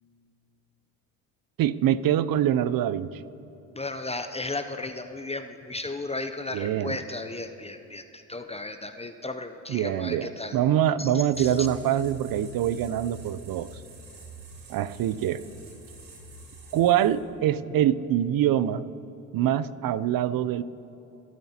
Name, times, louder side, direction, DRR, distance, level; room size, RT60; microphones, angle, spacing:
voice 1, 1.6-3.1 6.5-7.0 9.7-13.7 14.7-15.4 16.7-18.8 19.3-20.6, right 11 dB, 55° right, 17 dB, 0.6 m, -24 dB
voice 2, 3.7-10.6 11.0-11.7, left 2 dB, 15° left, 8 dB, 0.6 m, -35 dB
sound 1, 11.3-17.3, right 3 dB, 80° right, 3.1 m, -45 dB
21.5 x 9.3 x 2.9 m, 2.8 s
supercardioid pair, 65°, 43 cm